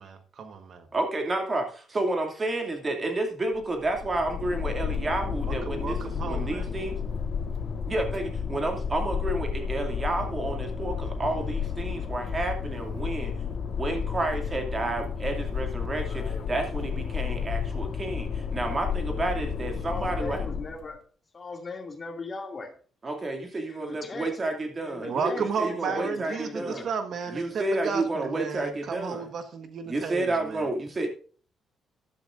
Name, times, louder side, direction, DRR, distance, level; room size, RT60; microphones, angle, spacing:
voice 1, 0.0-0.9 5.4-6.7 25.0-30.7, right 5 dB, 60° right, 7 dB, 1.4 m, -33 dB
voice 2, 0.9-6.0 6.2-7.0 7.9-13.3 13.7-20.4 23.0-26.9 27.3-29.2 29.9-31.1, right 2 dB, 30° right, 4 dB, 2.4 m, -30 dB
sound 1, 3.5-20.8, left 6 dB, 55° left, 2.4 m, -32 dB
voice 3, 19.8-21.0 21.3-22.7 23.7-24.4 24.8-26.9, left 3 dB, 35° left, 3 dB, 2.4 m, -38 dB
12.5 x 11.5 x 2.6 m, 0.42 s
cardioid pair, 90°, 0 cm